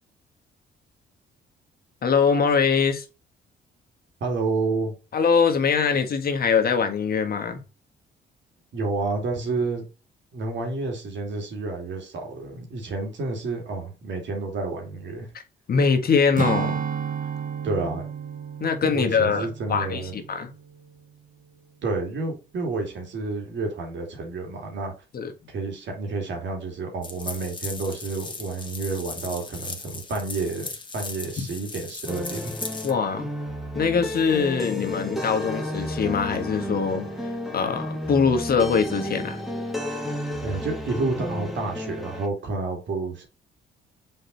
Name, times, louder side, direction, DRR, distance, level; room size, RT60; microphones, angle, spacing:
voice 1, 2.0-3.0 5.1-7.6 15.3-15.4 15.7-16.8 18.6-20.5 25.1-25.3 31.4-31.5 32.8-33.3 33.7-37.1 37.5-39.4, left 6 dB, 50° left, 1.5 m, -23 dB
voice 2, 4.2-5.0 8.7-9.8 10.3-15.3 17.6-18.1 18.9-20.2 21.8-24.9 25.5-32.5 40.4-43.2, right 3 dB, 65° right, 2.8 m, -30 dB
Strum, 16.4-21.1 21.4-21.7, right 7 dB, 45° right, 1.0 m, -32 dB
sound 1, 27.0-32.9, left 3 dB, 25° left, 1.6 m, -37 dB
sound 2, 32.1-42.3, left 1 dB, ahead, 1.7 m, -32 dB
6.4 x 4.6 x 4.1 m
cardioid pair, 90°, 20 cm